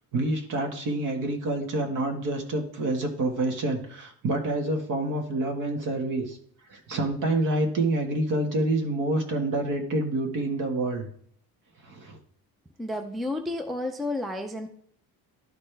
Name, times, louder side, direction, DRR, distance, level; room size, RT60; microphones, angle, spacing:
voice 1, 0.1-6.4 6.7-11.1 11.8-12.2, right 2 dB, 55° right, 3 dB, 1.7 m, -27 dB
voice 2, 12.8-14.7, left 2 dB, ahead, 5 dB, 0.5 m, -31 dB
12.0 x 4.2 x 3.3 m, 0.64 s
cardioid pair, 140°, 37 cm